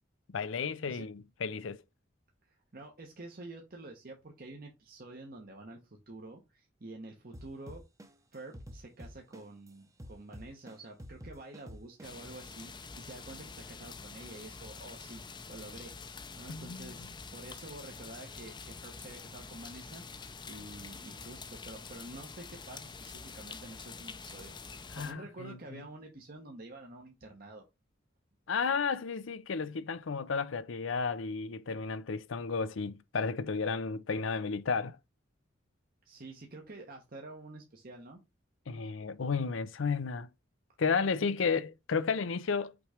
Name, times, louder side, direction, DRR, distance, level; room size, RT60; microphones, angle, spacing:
voice 1, 0.3-1.8 16.5-17.1 24.9-25.8 28.5-35.0 38.7-40.3 40.8-42.7, left 5 dB, 75° left, 0.5 m, -33 dB
voice 2, 2.4-7.8 8.3-15.9 16.4-27.6 36.0-38.2, right 2 dB, 50° right, 1.1 m, -48 dB
sound 1, 7.3-9.7 10.0-12.4, equal, 15° right, 0.8 m, -47 dB
sound 2, 12.0-25.1, left 4 dB, 25° left, 0.6 m, -46 dB
6.0 x 3.2 x 5.0 m
head